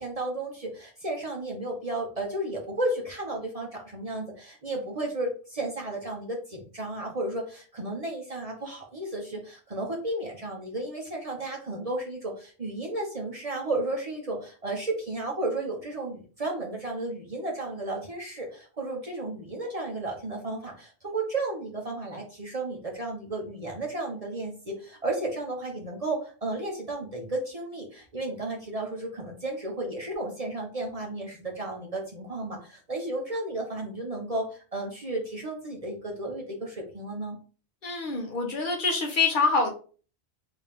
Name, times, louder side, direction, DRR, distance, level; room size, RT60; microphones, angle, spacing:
voice 1, 0.0-37.4, right 2 dB, 35° right, 0 dB, 0.7 m, -33 dB
voice 2, 37.8-39.7, left 4 dB, 50° left, 1 dB, 0.9 m, -25 dB
3.4 x 2.8 x 3.4 m, 0.39 s
omnidirectional pair, 1.2 m